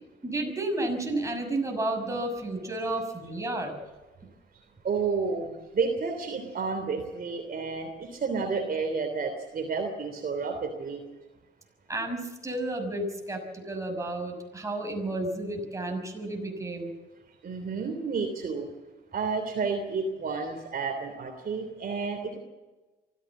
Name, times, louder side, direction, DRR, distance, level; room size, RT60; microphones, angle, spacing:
voice 1, 0.2-3.8 11.9-16.9, right 2 dB, 15° right, 2 dB, 6.4 m, -32 dB
voice 2, 4.8-11.0 17.4-18.7 19.1-22.4, right 4 dB, 50° right, 5 dB, 3.3 m, -31 dB
24.5 x 15.0 x 7.4 m, 1.2 s
cardioid pair, 90°, 20 cm